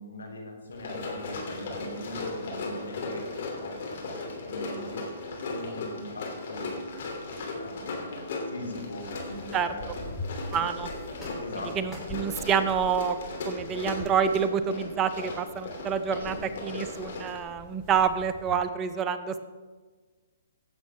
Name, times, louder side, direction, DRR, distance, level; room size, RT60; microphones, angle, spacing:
voice 1, 0.0-6.9 7.6-10.2 11.4-12.0 16.1-16.9, left 1 dB, 80° left, 2 dB, 2.5 m, -41 dB
Run, 0.7-17.4, left 3 dB, 55° left, 3.0 m, -37 dB
sound 1, 8.7-18.7, left 1 dB, 10° left, 3.3 m, -44 dB
voice 2, 10.5-10.9 11.8-13.2 13.5-16.4 16.6-19.4, right 7 dB, 25° right, 10 dB, 0.7 m, -27 dB
16.5 x 7.5 x 3.6 m, 1.4 s
hypercardioid pair, 130°, 0 cm